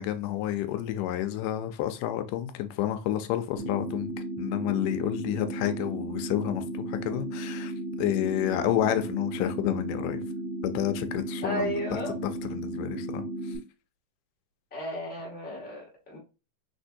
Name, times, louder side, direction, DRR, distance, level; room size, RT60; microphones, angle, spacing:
voice 1, 0.0-4.1 4.4-10.2 10.6-11.7 12.4-13.2, left 12 dB, 85° left, 2.1 m, -30 dB
sound 1, 3.6-13.6, right 1 dB, 35° right, 1.9 m, -35 dB
voice 2, 11.4-12.1 14.7-16.2, equal, 5° left, 1.2 m, -33 dB
4.4 x 4.2 x 2.7 m
omnidirectional pair, 3.7 m